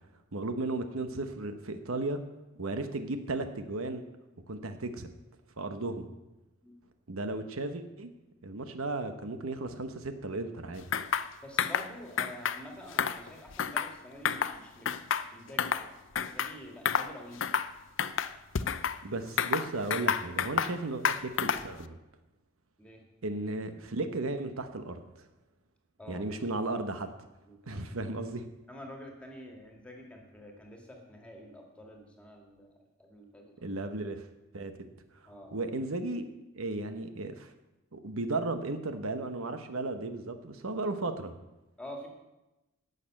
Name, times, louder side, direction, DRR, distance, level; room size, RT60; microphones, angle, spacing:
voice 1, 0.3-2.2 2.5-4.0 4.5-5.1 5.6-6.1 7.1-8.1 8.4-10.8 19.0-22.0 23.2-25.0 26.1-27.1 27.7-28.4 33.6-34.3 34.5-34.7 35.2-36.2 36.5-37.5 37.9-41.3, right 2 dB, 75° right, 8 dB, 1.0 m, -35 dB
sound 1, 10.9-11.3 11.6-11.9 12.2-12.6 12.9-13.9 14.2-14.6 14.9-15.9 16.1-16.5 16.8-17.1 17.4-17.7 18.0-19.0 19.4-20.7 21.0-21.7, left 7 dB, 60° left, 0.6 m, -30 dB
voice 2, 11.4-14.9 15.3-17.5 22.8-23.0 26.0-26.2 27.5-27.9 28.7-33.8 35.3-35.5 41.8-42.1, equal, 5° left, 1 dB, 2.0 m, -48 dB
11.5 x 6.8 x 8.7 m, 1.0 s
head